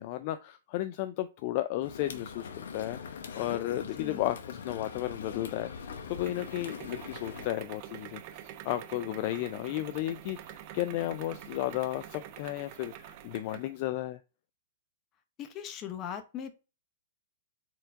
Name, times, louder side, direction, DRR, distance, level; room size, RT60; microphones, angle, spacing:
voice 1, 0.0-14.2, left 14 dB, 45° left, 0.3 m, -34 dB
sound 1, 1.8-7.5, left 6 dB, 80° left, 0.8 m, -42 dB
sound 2, 5.0-13.8, right 11 dB, 40° right, 0.5 m, -47 dB
voice 2, 15.4-16.5, left 9 dB, 25° left, 0.7 m, -39 dB
4.5 x 3.7 x 2.5 m
hypercardioid pair, 145°, 0 cm